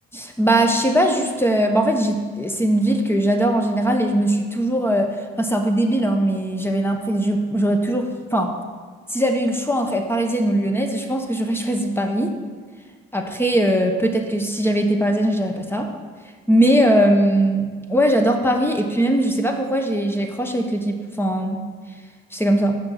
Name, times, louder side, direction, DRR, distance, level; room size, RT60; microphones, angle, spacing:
voice 1, 0.1-8.5 9.1-12.4 13.1-15.9 16.5-21.6 22.3-22.7, right 1 dB, 10° left, 3 dB, 1.0 m, -20 dB
6.4 x 4.7 x 5.8 m, 1.5 s
supercardioid pair, 55°, 29 cm